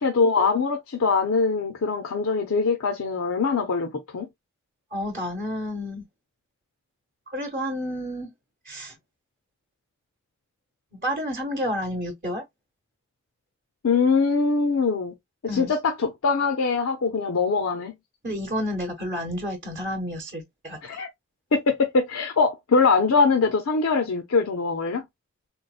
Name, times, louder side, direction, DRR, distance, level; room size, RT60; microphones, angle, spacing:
voice 1, 0.0-4.3 13.8-15.1 15.4-17.9 20.8-21.1 21.5-25.0, left 4 dB, 80° left, 0.6 m, -22 dB
voice 2, 4.9-6.0 7.3-8.3 8.7-8.9 10.9-12.4 15.5-15.7 18.2-21.0, equal, 40° right, 0.9 m, -30 dB
3.9 x 2.1 x 2.3 m
head